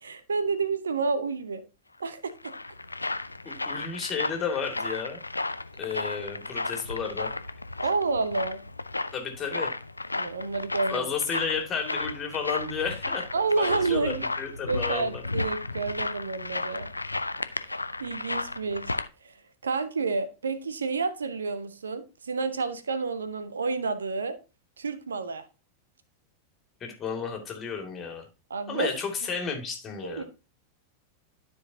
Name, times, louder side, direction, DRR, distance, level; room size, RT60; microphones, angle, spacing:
voice 1, 0.0-1.6 2.0-2.5 7.8-8.6 10.2-11.1 13.3-14.3 14.7-16.9 17.4-18.9 19.2-19.3 19.6-24.4 24.8-25.5 28.5-28.9 30.0-30.2, right 4 dB, 70° right, 0.7 m, -29 dB
sound 1, 2.1-19.1, left 2 dB, 80° left, 0.4 m, -34 dB
voice 2, 3.4-5.2 5.8-7.3 9.1-9.7 10.9-13.2 13.6-15.2 26.8-28.3 28.7-30.2, left 6 dB, 25° left, 2.2 m, -32 dB
12.5 x 4.7 x 2.7 m
figure-of-eight pair, 90°, 0 cm